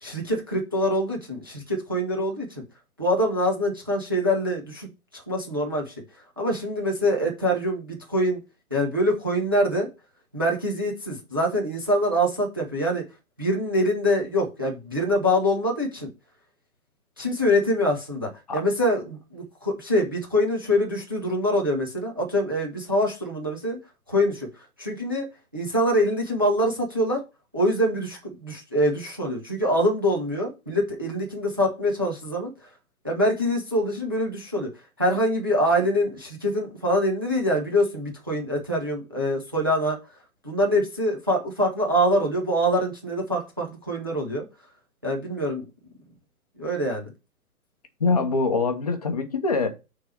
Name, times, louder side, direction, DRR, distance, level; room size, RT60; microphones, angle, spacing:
voice 1, 0.0-2.5 3.0-4.9 5.1-5.9 6.4-8.4 8.7-9.9 10.3-13.0 13.4-16.1 17.2-23.8 24.1-24.5 24.8-25.3 25.5-27.2 27.5-32.5 33.0-34.7 35.0-40.0 40.4-44.4 45.0-45.6 46.6-47.1, equal, 15° right, 0.6 m, -24 dB
voice 2, 48.0-49.7, left 4 dB, 25° left, 0.8 m, -24 dB
6.2 x 3.7 x 5.7 m
hypercardioid pair, 175°, 44 cm